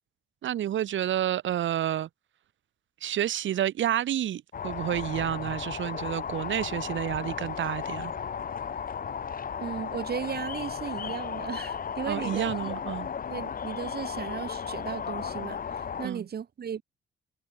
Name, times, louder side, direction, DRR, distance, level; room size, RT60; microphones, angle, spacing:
voice 1, 0.4-2.1 3.0-8.1 12.1-13.1 16.0-16.3, right 11 dB, 70° right, 5.8 m, -29 dB
sound 1, 4.5-16.1, left 7 dB, 45° left, 2.6 m, -35 dB
voice 2, 9.6-12.7 13.3-16.8, right 7 dB, 50° right, 5.8 m, -36 dB
cardioid pair, 90°, 20 cm